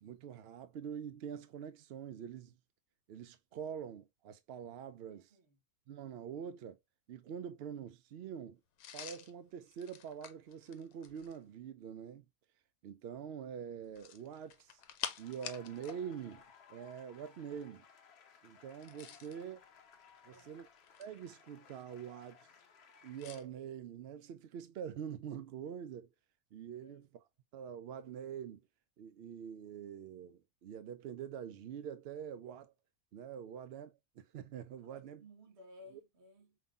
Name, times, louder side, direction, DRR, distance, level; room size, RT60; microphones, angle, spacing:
voice 1, 0.0-2.6 3.1-5.3 5.9-6.8 7.1-8.6 8.9-12.2 12.8-14.8 15.2-16.4 16.7-17.9 18.4-19.6 20.2-20.7 21.0-22.4 23.0-26.1 26.5-27.1 27.5-28.6 29.0-32.7 33.1-35.2, right 8 dB, 70° right, 0.5 m, -45 dB
voice 2, 5.1-5.6 19.1-19.4 20.2-20.7 26.7-27.1 34.8-36.6, left 1 dB, 50° right, 1.2 m, -59 dB
sound 1, 8.8-11.5 13.9-16.0 16.3-16.5 18.7-19.4 20.2-21.3 23.2-23.4, left 9 dB, 75° left, 1.1 m, -47 dB
sound 2, 14.5-23.4, left 6 dB, 55° left, 0.8 m, -61 dB
5.3 x 3.0 x 2.3 m
omnidirectional pair, 1.6 m